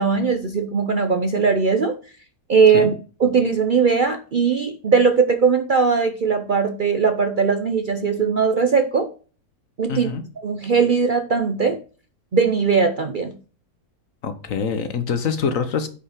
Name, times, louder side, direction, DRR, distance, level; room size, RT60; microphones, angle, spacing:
voice 1, 0.0-1.9 2.5-2.9 3.2-9.1 9.8-10.1 10.4-11.8 12.3-13.3, right 5 dB, 45° right, 7 dB, 0.7 m, -19 dB
voice 2, 9.9-10.2 14.2-15.9, left 6 dB, 65° left, 10 dB, 1.4 m, -25 dB
8.5 x 5.3 x 4.9 m, 0.38 s
omnidirectional pair, 1.6 m